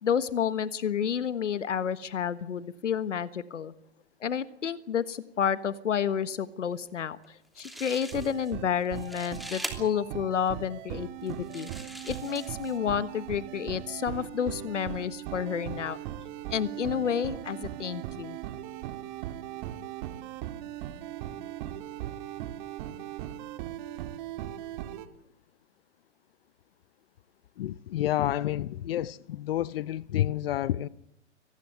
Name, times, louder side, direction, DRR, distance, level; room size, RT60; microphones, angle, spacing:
voice 1, 0.0-3.7 4.2-11.7 12.0-16.0 16.5-18.4, left 8 dB, 85° left, 1.4 m, -30 dB
sound 1, 7.2-7.3 7.6-8.5 8.8-9.7 10.5-10.6 11.3-12.8, equal, ahead, 2.9 m, -41 dB
sound 2, 8.1-25.1, right 12 dB, 40° right, 1.9 m, -39 dB
voice 2, 27.6-30.9, left 12 dB, 55° left, 0.8 m, -29 dB
25.0 x 19.5 x 7.9 m
hypercardioid pair, 135°, 36 cm